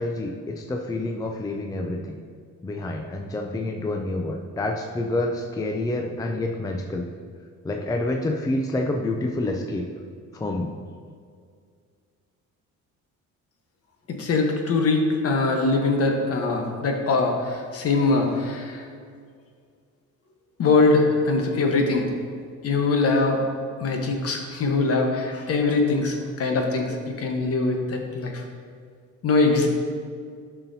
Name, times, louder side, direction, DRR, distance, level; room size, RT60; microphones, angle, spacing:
voice 1, 0.0-2.2 2.6-7.1 7.6-9.9 10.3-10.7, left 2 dB, 10° left, 3 dB, 0.4 m, -28 dB
voice 2, 14.1-18.9 20.6-22.1 22.6-23.4 23.8-28.4 29.2-29.7, left 3 dB, 50° left, 2 dB, 1.2 m, -22 dB
11.0 x 5.7 x 2.7 m, 2.1 s
cardioid pair, 115°, 31 cm